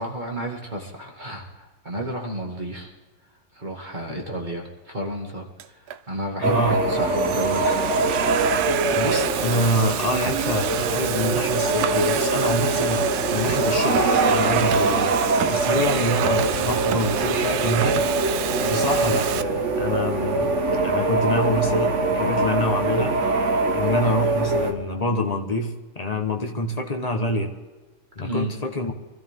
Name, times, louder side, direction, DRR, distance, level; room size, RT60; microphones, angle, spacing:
voice 1, 0.0-2.9 3.5-7.9 28.2-28.5, right 1 dB, 20° right, 0 dB, 2.0 m, -32 dB
Domestic sounds home sounds, 5.6-6.0 6.7-19.4, right 10 dB, 80° right, 0.8 m, -28 dB
voice 2, 6.4-6.8 8.9-15.1 15.5-18.0 18.6-20.5 20.8-23.1 23.7-27.5 28.2-28.9, left 1 dB, 25° left, 4 dB, 0.9 m, -26 dB
sound 1, 6.4-24.7, right 2 dB, 35° right, 1.5 m, -23 dB
24.5 x 13.5 x 3.7 m, 1.2 s
omnidirectional pair, 2.4 m